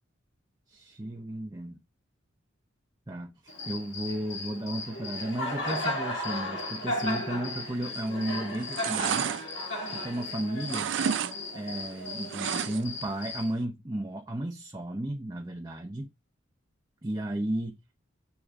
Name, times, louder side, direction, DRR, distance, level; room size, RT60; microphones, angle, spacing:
voice 1, 0.7-1.8 3.1-9.3 9.9-10.9 11.5-16.1 17.0-17.8, right 1 dB, 20° right, 0.8 m, -34 dB
Cricket, 3.5-13.5, left 1 dB, 60° left, 2.2 m, -35 dB
sound 1, 7.9-8.2 8.5-10.3 10.6-11.3 11.6-13.0 13.4-13.5, right 8 dB, 70° right, 0.4 m, -31 dB
8.3 x 3.8 x 3.7 m
head